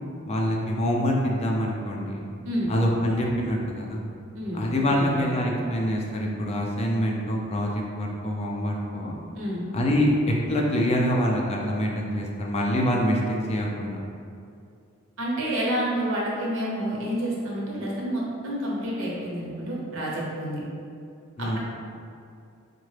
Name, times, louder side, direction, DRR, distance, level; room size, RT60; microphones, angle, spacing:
voice 1, 0.3-2.3 2.7-4.0 4.5-9.2 9.7-14.0 21.4-21.6, equal, 30° left, -1 dB, 0.4 m, -25 dB
voice 2, 4.3-4.7 4.9-5.1 9.3-9.6 15.2-20.6 21.4-21.6, right 1 dB, 70° right, -5 dB, 0.8 m, -29 dB
3.7 x 2.1 x 3.2 m, 2.4 s
head